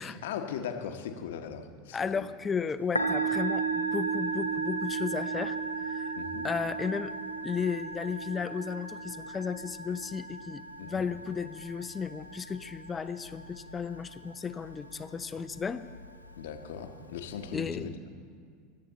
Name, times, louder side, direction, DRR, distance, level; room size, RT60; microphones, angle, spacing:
voice 1, 0.0-2.3 6.1-6.5 10.8-11.1 16.4-18.0, left 8 dB, 60° left, 7 dB, 0.9 m, -39 dB
voice 2, 1.9-6.2 6.4-7.1 7.4-15.8 17.5-17.9, left 6 dB, 20° left, 13 dB, 0.4 m, -34 dB
Musical instrument, 2.8-17.5, right 4 dB, 90° left, 0.6 m, -36 dB
20.5 x 7.5 x 3.9 m, 2.2 s
figure-of-eight pair, 80°, 0 cm